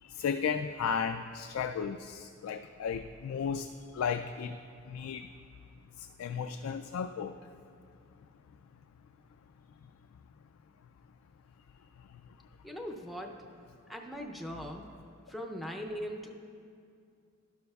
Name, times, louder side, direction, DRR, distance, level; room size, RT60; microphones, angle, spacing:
voice 1, 0.0-3.7 3.9-4.6 4.9-5.3 6.0-7.4, left 6 dB, 85° left, 8 dB, 0.3 m, -34 dB
voice 2, 12.6-13.4 13.9-14.9 15.3-16.3, equal, ahead, 2 dB, 0.5 m, -40 dB
12.0 x 12.0 x 2.3 m, 2.4 s
head